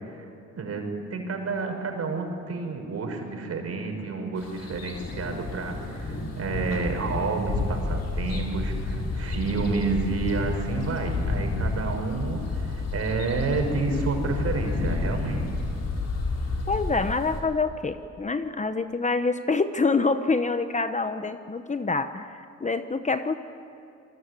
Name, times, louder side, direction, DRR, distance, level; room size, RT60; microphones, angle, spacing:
voice 1, 0.5-15.6, right 4 dB, 55° right, 3 dB, 5.9 m, -30 dB
sound 1, 4.4-17.4, left 3 dB, 55° left, 5.7 m, -30 dB
voice 2, 16.7-23.3, left 3 dB, 25° left, 10 dB, 1.1 m, -26 dB
28.0 x 20.5 x 9.9 m, 2.5 s
cardioid pair, 90°, 30 cm